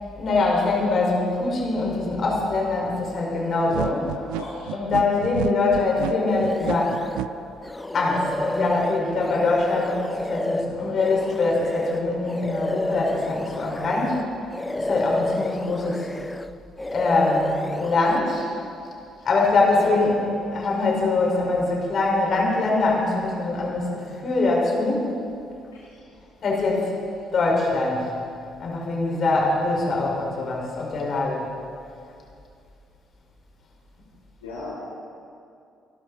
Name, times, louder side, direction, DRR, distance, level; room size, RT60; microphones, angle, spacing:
voice 1, 0.2-4.2 4.7-7.0 7.9-14.4 14.7-16.1 16.9-18.5 19.2-20.1 20.5-25.2 26.4-26.9 27.3-28.2 28.6-31.5, left 3 dB, 50° left, -2 dB, 4.8 m, -23 dB
sound 1, 3.7-7.3, right 16 dB, 75° right, 0.4 m, -31 dB
voice 2, 4.4-4.8 19.8-19.9 25.7-26.0 34.4-34.7, left 2 dB, 85° left, -9 dB, 3.3 m, -37 dB
sound 2, 6.3-7.2 7.6-14.2 14.5-16.5 16.8-18.2, left 1 dB, 15° left, 0.7 m, -30 dB
26.0 x 12.5 x 4.1 m, 2.5 s
hypercardioid pair, 50°, 0 cm